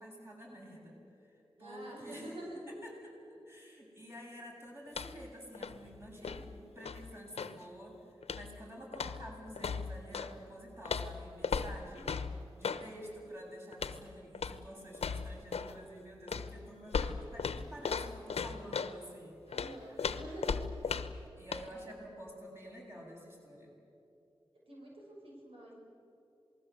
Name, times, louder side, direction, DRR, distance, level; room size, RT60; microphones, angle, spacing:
voice 1, 0.0-2.3 2.7-12.1 12.6-19.4 19.9-20.1 21.4-23.7, equal, 25° right, -2 dB, 7.5 m, -49 dB
voice 2, 1.6-2.6 11.9-12.1 13.3-13.5 19.5-20.6 22.1-22.3 24.7-25.7, right 1 dB, 65° right, -3 dB, 6.3 m, -48 dB
walking with slippers, 4.9-5.3 5.5-7.6 8.2-8.6 8.9-10.3 10.8-12.9 13.7-14.0 14.3-14.6 14.9-15.8 16.3-19.0 19.5-21.2 21.5-21.7, left 5 dB, 85° left, 1.0 m, -37 dB
27.5 x 20.0 x 8.1 m, 2.8 s
wide cardioid pair, 80°, 10 cm